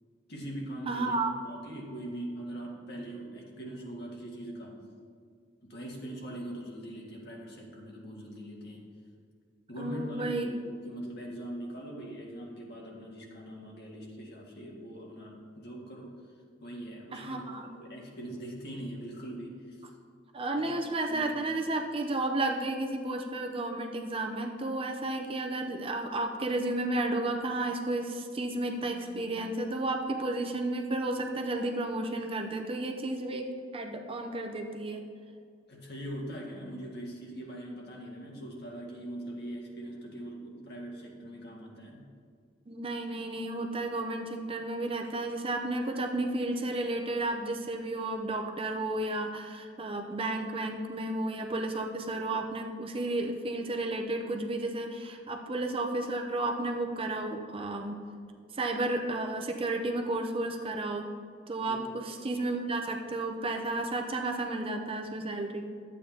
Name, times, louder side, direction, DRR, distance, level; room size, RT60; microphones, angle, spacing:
voice 1, 0.3-4.8 5.6-8.8 9.7-16.2 16.6-19.8 20.6-20.7 21.1-21.6 35.7-42.0 61.7-62.0, right 1 dB, 55° left, -2 dB, 1.9 m, -42 dB
voice 2, 0.9-1.3 9.8-10.5 17.1-17.8 20.3-35.0 42.7-58.0 58.5-61.2 61.5-65.7, right 2 dB, 30° right, 3 dB, 0.6 m, -32 dB
12.5 x 8.5 x 2.8 m, 2.1 s
head